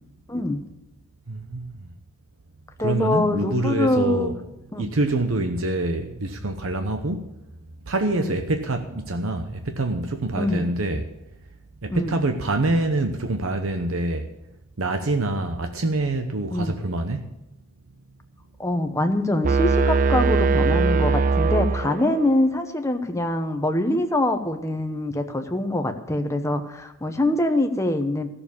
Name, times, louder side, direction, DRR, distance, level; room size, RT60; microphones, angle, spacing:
voice 1, 0.3-0.6 2.8-4.3 4.7-4.9 8.1-8.4 10.4-10.7 11.9-12.2 16.5-16.8 18.6-28.3, left 1 dB, 15° left, 0.9 m, -24 dB
voice 2, 1.3-1.9 2.8-4.4 4.7-7.3 7.8-11.1 11.8-14.3 14.8-17.3, right 2 dB, 85° right, 0.9 m, -26 dB
sound 1, 19.4-22.4, right 4 dB, 40° right, 0.4 m, -20 dB
14.5 x 7.0 x 7.0 m
head